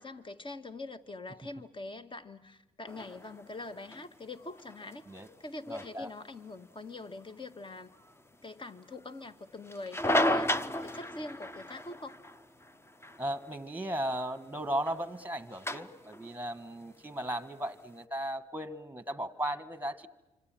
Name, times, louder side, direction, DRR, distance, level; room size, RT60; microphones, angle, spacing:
voice 1, 0.0-5.1 5.4-7.9 8.4-10.5 10.8-12.2, left 2 dB, 30° left, 10 dB, 1.7 m, -44 dB
sound 1, 2.9-18.0, left 1 dB, 15° left, 1.1 m, -37 dB
voice 2, 5.7-6.1 13.2-20.1, right 1 dB, 10° right, 13 dB, 1.6 m, -36 dB
26.0 x 25.5 x 7.7 m, 0.99 s
hypercardioid pair, 55°, 17 cm